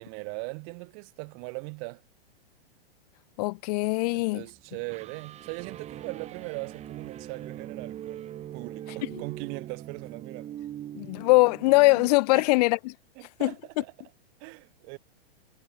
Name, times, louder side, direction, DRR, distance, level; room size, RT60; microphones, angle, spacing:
voice 1, 0.0-2.0 4.1-10.6 12.3-12.5 13.2-14.1 14.4-15.0, right 40 dB or more, 40° right, 4.3 m, -39 dB
voice 2, 3.4-4.4 10.9-12.9 13.4-13.5, left 24 dB, 40° left, 1.1 m, -22 dB
sound 1, 3.8-12.1, right 11 dB, 20° right, 2.4 m, -42 dB
hypercardioid pair, 140°, 30 cm